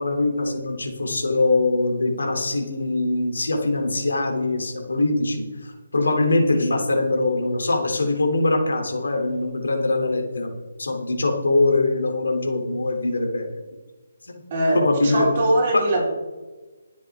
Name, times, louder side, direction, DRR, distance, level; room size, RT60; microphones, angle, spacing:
voice 1, 0.0-10.5 10.8-13.6 14.3-14.4 14.7-15.3 15.7-15.8, left 2 dB, 85° left, 3 dB, 3.1 m, -22 dB
voice 2, 14.5-16.0, right 1 dB, 35° right, -2 dB, 4.2 m, -21 dB
20.5 x 7.5 x 3.7 m, 1.2 s
hypercardioid pair, 165°, 0 cm